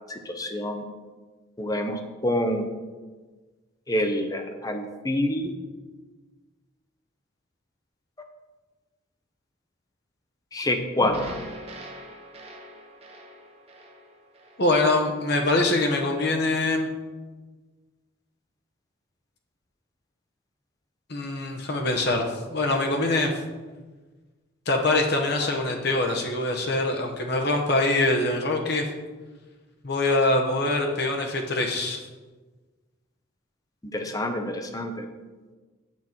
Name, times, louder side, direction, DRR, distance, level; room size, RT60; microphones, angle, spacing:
voice 1, 0.1-0.8 1.6-2.7 3.9-5.5 10.5-11.4 33.9-35.0, left 1 dB, 20° left, 6 dB, 0.6 m, -27 dB
sound 1, 11.0-15.3, equal, 30° right, 0.9 m, -42 dB
voice 2, 14.6-16.9 21.1-22.2 22.5-23.3 24.7-28.8 29.8-32.0, left 2 dB, 55° left, 2 dB, 1.0 m, -24 dB
7.9 x 6.1 x 4.4 m, 1.3 s
head